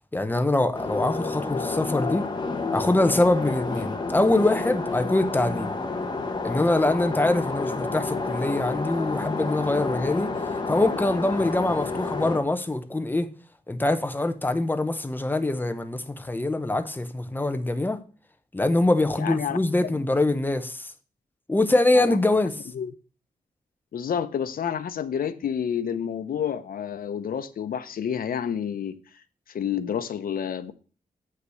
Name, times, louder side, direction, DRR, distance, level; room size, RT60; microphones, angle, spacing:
voice 1, 0.1-2.2 2.7-5.8 6.4-10.3 10.7-13.3 13.7-18.0 18.5-20.9 21.5-22.5, left 2 dB, 15° left, 0.7 m, -24 dB
sound 1, 0.7-12.4, left 3 dB, 30° left, 1.3 m, -30 dB
voice 2, 19.2-19.6 19.8-19.9 21.9-22.4 22.7-22.9 23.9-29.0 29.5-30.7, left 8 dB, 75° left, 0.8 m, -29 dB
7.9 x 5.8 x 6.3 m
wide cardioid pair, 145°, 15 cm